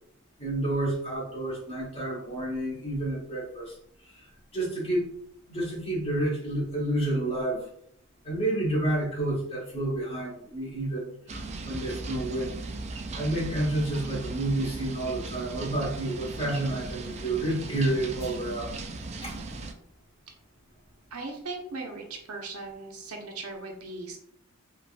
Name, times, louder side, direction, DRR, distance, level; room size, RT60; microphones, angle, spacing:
voice 1, 0.4-3.7 4.5-5.1 5.5-7.7 8.2-12.6 13.1-18.8 19.2-19.4, right 1 dB, 25° left, -3 dB, 1.0 m, -30 dB
sound 1, 11.3-19.7, right 3 dB, 30° right, 0.3 m, -37 dB
voice 2, 21.1-24.2, right 3 dB, 75° right, 2 dB, 0.6 m, -38 dB
3.3 x 2.3 x 2.4 m, 0.70 s
head